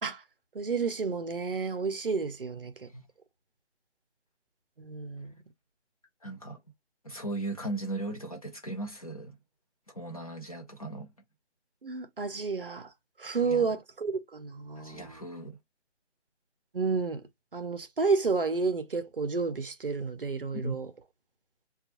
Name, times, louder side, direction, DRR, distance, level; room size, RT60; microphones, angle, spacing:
voice 1, 0.5-2.9 4.8-5.3 11.8-12.9 13.2-15.2 16.7-17.2 17.5-20.9, right 4 dB, 50° right, 0.6 m, -31 dB
voice 2, 6.2-6.6 7.0-9.3 9.9-11.1 13.4-13.7 14.8-15.6 20.5-20.7, right 2 dB, 30° left, 0.7 m, -37 dB
5.2 x 2.3 x 2.8 m
figure-of-eight pair, 170°, 35 cm